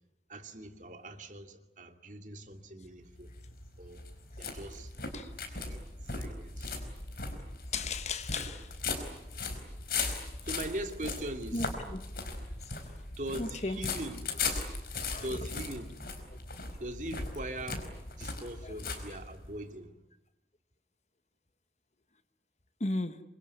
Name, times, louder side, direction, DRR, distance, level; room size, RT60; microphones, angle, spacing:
voice 1, 0.3-3.3 3.8-4.0 4.4-4.9 5.5-5.8 6.1-6.7 7.2-7.4 8.9-9.0 10.4-11.7 13.2-14.3 15.2-15.9 16.8-19.9, right 1 dB, 45° right, 2.5 m, -41 dB
sound 1, 3.1-19.6, left 4 dB, 55° left, 4.8 m, -38 dB
voice 2, 7.7-8.7 11.5-11.7 11.9-12.0 13.4-13.8 15.0-15.2 22.8-23.2, left 3 dB, 40° left, 1.3 m, -34 dB
27.0 x 23.0 x 9.6 m
head